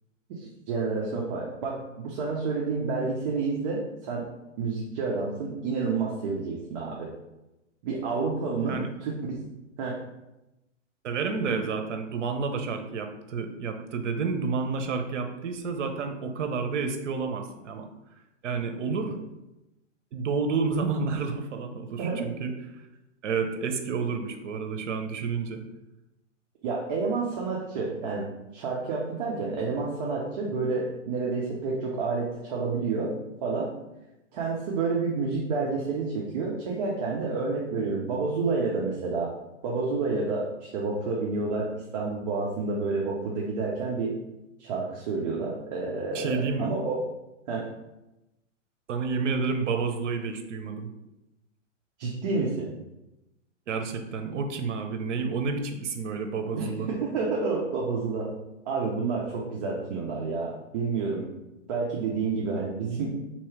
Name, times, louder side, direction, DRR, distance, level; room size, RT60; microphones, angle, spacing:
voice 1, 0.4-4.3 4.6-7.1 7.8-9.3 9.8-10.0 22.0-22.3 26.6-33.1 33.4-33.7 34.3-39.3 39.6-44.1 44.6-47.0 47.5-47.7 52.0-52.7 56.5-58.3 58.7-61.3 61.7-63.2, right 4 dB, 35° right, -3 dB, 0.7 m, -29 dB
voice 2, 11.0-17.9 18.4-19.2 20.1-22.5 23.2-25.6 46.1-46.7 48.9-50.9 53.7-56.9, right 5 dB, 70° right, 6 dB, 0.8 m, -30 dB
3.8 x 3.1 x 4.5 m, 0.95 s
hypercardioid pair, 145°, 37 cm